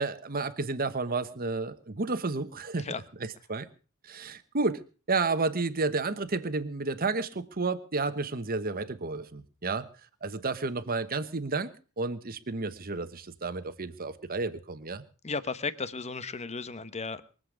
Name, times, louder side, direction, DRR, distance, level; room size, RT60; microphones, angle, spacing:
voice 1, 0.0-2.9 3.5-3.7 4.1-4.8 5.1-9.9 10.2-11.7 12.0-15.0, right 3 dB, 45° right, 11 dB, 1.2 m, -31 dB
voice 2, 15.2-17.2, left 4 dB, 30° left, 14 dB, 1.0 m, -34 dB
23.0 x 7.8 x 6.4 m, 0.38 s
head